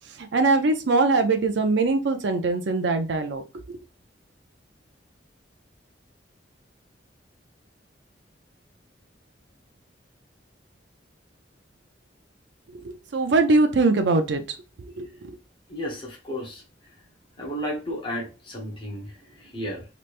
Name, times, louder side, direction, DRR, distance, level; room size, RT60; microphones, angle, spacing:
voice 1, 0.2-3.4 3.7-3.8 12.7-14.4 14.8-15.4, right 3 dB, 70° right, 6 dB, 0.5 m, -22 dB
voice 2, 15.7-16.6 16.9-17.0 17.4-19.9, equal, 25° left, -2 dB, 0.8 m, -33 dB
3.2 x 3.0 x 2.5 m, 0.30 s
head